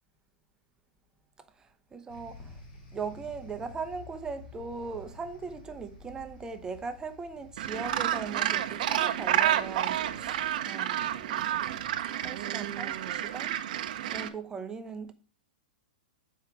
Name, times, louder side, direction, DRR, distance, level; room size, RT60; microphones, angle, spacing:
voice 1, 1.9-2.6 2.9-11.7 12.1-13.6 13.9-15.1, right 5 dB, 15° right, 0.7 m, -39 dB
sound 1, 2.1-10.5, left 3 dB, 65° left, 4.2 m, -51 dB
Gull seagull, 7.6-14.3, right 11 dB, 60° right, 0.7 m, -30 dB
7.6 x 4.7 x 4.6 m
hypercardioid pair, 135°, 5 cm